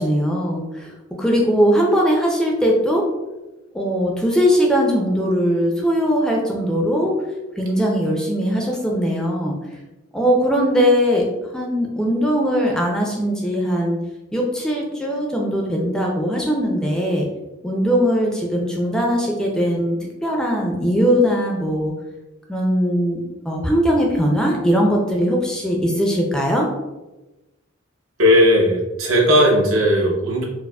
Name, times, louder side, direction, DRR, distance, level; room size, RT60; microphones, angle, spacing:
voice 1, 0.0-3.0 3.7-7.2 7.6-9.6 10.1-11.3 11.5-14.0 14.3-17.3 17.6-21.9 22.5-26.7, equal, 5° left, -1 dB, 0.4 m, -20 dB
voice 2, 28.2-30.4, equal, 80° right, -2 dB, 0.8 m, -16 dB
4.6 x 2.0 x 2.2 m, 1.1 s
head